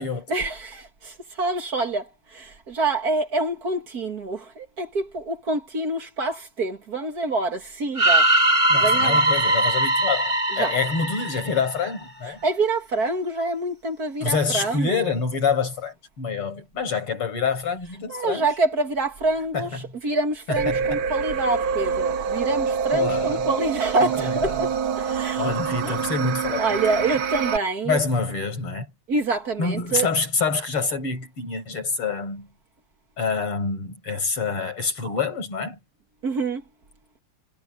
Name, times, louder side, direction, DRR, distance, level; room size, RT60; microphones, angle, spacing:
voice 1, 0.3-9.2 10.5-10.8 12.4-15.1 18.1-25.5 25.8-26.0 26.6-28.0 29.1-30.1 36.2-36.6, right 2 dB, 45° right, 2.4 m, -26 dB
sound 1, 8.0-12.0, right 1 dB, 20° right, 2.3 m, -20 dB
voice 2, 8.7-12.4 14.2-18.4 19.5-19.7 20.5-20.8 22.9-23.4 24.2-24.4 25.4-26.7 27.9-28.9 29.6-32.5 33.2-35.8, left 5 dB, 90° left, 6.7 m, -26 dB
sound 2, 20.6-27.6, right 6 dB, 70° right, 2.0 m, -26 dB
omnidirectional pair, 2.4 m